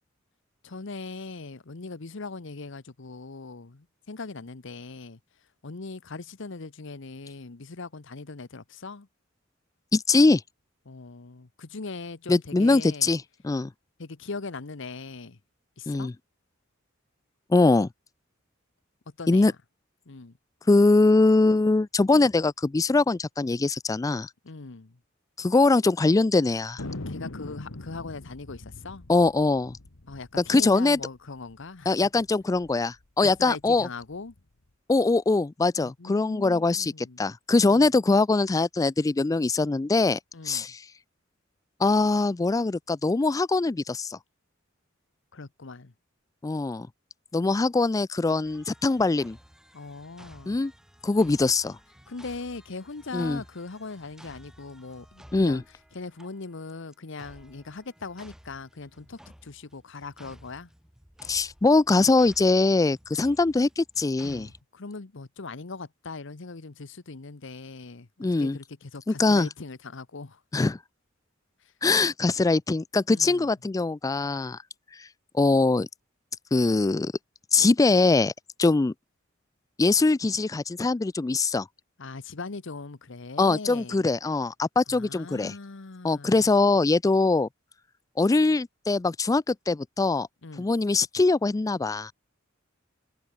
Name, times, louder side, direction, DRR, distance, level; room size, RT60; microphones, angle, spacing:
voice 1, 0.6-5.2 5.6-9.1 10.9-13.1 14.0-15.4 15.8-16.1 19.2-19.6 20.1-20.3 24.4-25.0 27.1-29.1 30.1-31.9 33.2-34.3 35.8-37.2 37.7-37.9 40.3-40.7 45.3-45.9 49.7-50.6 52.1-55.6 55.9-60.7 64.2-68.1 68.4-70.4 73.1-73.5 82.0-84.1 84.9-86.4 90.4-90.7, left 3 dB, 65° left, 1.0 m, -40 dB
voice 2, 9.9-10.4 12.3-13.7 15.9-16.1 17.5-17.9 19.3-19.5 20.7-24.3 25.4-26.8 29.1-29.8 30.4-31.0 31.9-33.9 34.9-40.2 40.4-40.8 41.8-44.2 46.4-46.9 47.3-49.4 50.5-50.7 51.0-51.8 53.1-53.4 55.3-55.6 61.3-64.5 68.2-68.6 69.1-69.5 70.5-70.8 71.8-74.6 75.3-75.9 76.5-77.1 77.5-78.3 78.6-78.9 79.8-81.7 83.4-85.5 86.0-87.5 88.2-90.3 90.6-92.1, left 3 dB, 15° left, 0.3 m, -22 dB
Thunder, 26.8-31.6 31.9-32.0 32.2-32.7 33.2-34.4, left 2 dB, 80° left, 1.5 m, -41 dB
sound 1, 48.4-64.6, equal, 5° right, 1.9 m, -54 dB
head